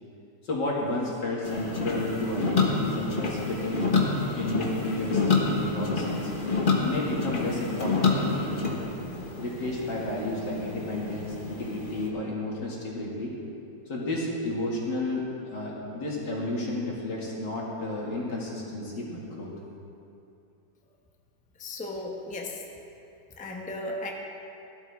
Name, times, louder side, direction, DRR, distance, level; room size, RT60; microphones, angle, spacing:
voice 1, 0.4-3.9 4.3-6.3 6.9-8.8 9.4-13.3 13.9-19.5, left 2 dB, 80° left, -4 dB, 2.9 m, -32 dB
sound 1, 1.4-12.1, left 3 dB, 30° left, 1.4 m, -28 dB
voice 2, 21.6-22.6 23.4-24.1, left 2 dB, 5° left, 0 dB, 0.8 m, -35 dB
17.0 x 12.0 x 3.6 m, 2.8 s
omnidirectional pair, 1.8 m